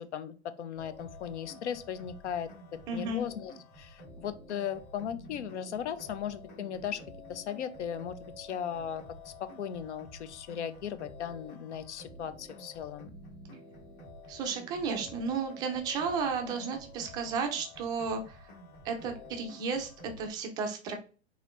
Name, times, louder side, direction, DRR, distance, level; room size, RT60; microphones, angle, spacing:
voice 1, 0.0-2.5 2.9-7.0 7.3-13.1, left 8 dB, 85° left, 13 dB, 0.7 m, -37 dB
sound 1, 0.7-20.3, left 1 dB, 30° left, 1.5 m, -50 dB
voice 2, 2.9-3.2 14.3-18.5 18.8-21.0, right 5 dB, 15° right, 5 dB, 0.3 m, -33 dB
4.0 x 3.0 x 3.1 m, 0.35 s
hypercardioid pair, 140°, 34 cm